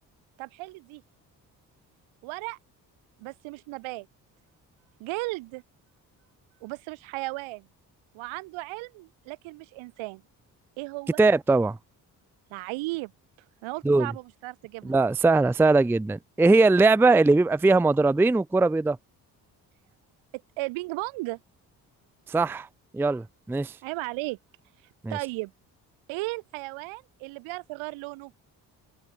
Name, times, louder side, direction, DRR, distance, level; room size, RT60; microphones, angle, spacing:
voice 1, 0.4-1.0 2.2-2.6 3.2-4.1 5.0-5.6 6.6-7.7 8.1-10.2 10.8-11.2 12.5-13.1 13.6-15.0 20.6-21.4 23.8-24.4 25.1-25.5 26.1-28.4, right 23 dB, 70° right, 2.0 m, -35 dB
voice 2, 11.2-11.8 13.8-14.1 14.8-19.0 22.3-22.7 22.9-23.7 25.0-25.2, right 3 dB, 5° right, 0.5 m, -20 dB
open air
figure-of-eight pair, 45°, 49 cm